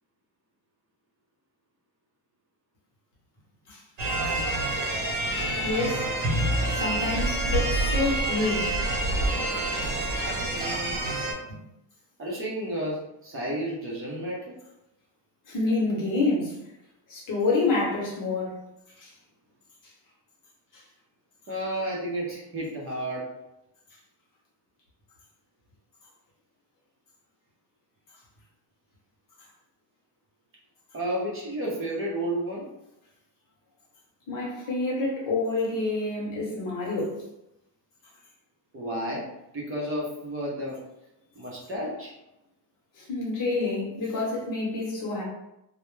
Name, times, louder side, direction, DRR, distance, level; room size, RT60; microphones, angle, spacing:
sound 1, 4.0-11.3, right 1 dB, 80° right, 0.8 m, -27 dB
voice 1, 5.6-6.1 6.7-8.8 11.5-11.6 15.5-16.6 17.1-18.6 19.0-19.1 20.7-20.8 34.3-37.2 43.0-45.2, left 3 dB, 45° left, -3 dB, 0.9 m, -28 dB
voice 2, 10.5-11.0 12.2-14.5 21.5-23.3 30.9-32.7 34.6-34.7 38.7-40.8 41.4-42.1 43.7-43.9, right 1 dB, 30° right, -4 dB, 0.6 m, -32 dB
2.2 x 2.0 x 3.0 m, 0.87 s
cardioid pair, 135°, 43 cm